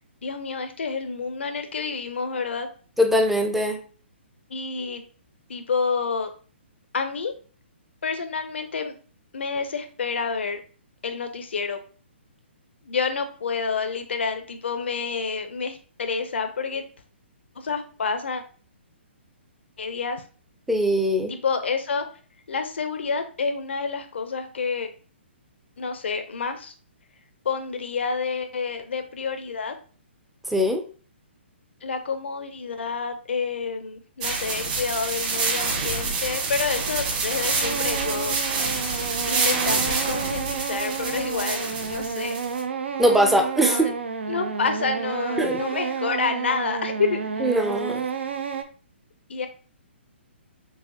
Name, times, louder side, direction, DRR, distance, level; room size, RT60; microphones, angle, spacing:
voice 1, 0.2-2.7 4.5-5.0 5.5-6.3 6.9-7.3 8.0-8.9 9.3-10.6 11.0-11.8 12.8-16.8 17.6-18.4 19.8-20.2 21.3-22.0 22.5-24.9 25.8-26.7 27.4-29.7 31.8-38.7 39.3-42.4 43.6-43.9 44.3-47.4 49.3-49.5, left 5 dB, 70° left, 7 dB, 0.6 m, -28 dB
voice 2, 3.0-3.8 20.7-21.3 30.5-30.8 43.0-43.9 45.4-45.6 47.4-48.0, equal, 5° right, 5 dB, 0.5 m, -21 dB
sound 1, 34.2-42.6, right 4 dB, 40° right, 1.7 m, -27 dB
sound 2, 37.1-48.6, right 6 dB, 70° right, 0.6 m, -31 dB
4.7 x 3.5 x 2.5 m, 0.39 s
figure-of-eight pair, 130°, 6 cm